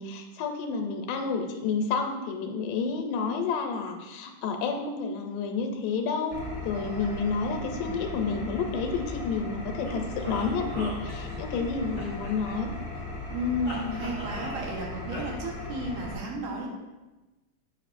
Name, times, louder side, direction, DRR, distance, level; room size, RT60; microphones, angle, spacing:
voice 1, 0.0-12.7, left 5 dB, 80° left, 4 dB, 2.3 m, -30 dB
Engine, 6.3-16.1, left 2 dB, 60° left, 1.0 m, -37 dB
voice 2, 6.7-7.2 7.7-8.0 13.3-16.7, left 1 dB, 70° right, -2 dB, 2.5 m, -33 dB
sound 1, 9.8-11.6 12.0-13.0 13.6-14.8 15.1-15.2, equal, 15° right, 1.3 m, -39 dB
7.8 x 5.8 x 2.5 m, 1.1 s
omnidirectional pair, 3.9 m